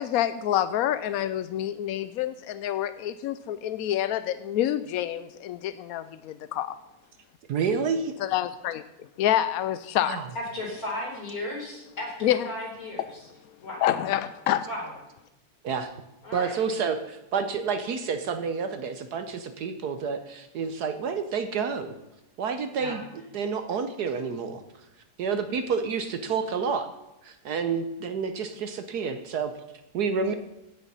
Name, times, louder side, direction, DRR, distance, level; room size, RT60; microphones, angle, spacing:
voice 1, 0.0-6.8 8.2-8.8 9.2-10.2 12.2-12.5 13.8-14.7, left 11 dB, 80° left, 13 dB, 0.8 m, -27 dB
voice 2, 7.5-8.0 10.0-10.3 15.6-15.9 16.3-21.9 22.4-23.0 23.3-24.6 25.2-26.9 27.2-29.5 29.9-30.3, right 5 dB, 65° right, 9 dB, 1.3 m, -29 dB
voice 3, 10.3-13.2 13.6-13.9 14.7-14.9 16.2-16.6 22.8-23.0, left 1 dB, 50° left, -2 dB, 4.6 m, -35 dB
15.5 x 6.8 x 5.5 m, 0.94 s
omnidirectional pair, 2.0 m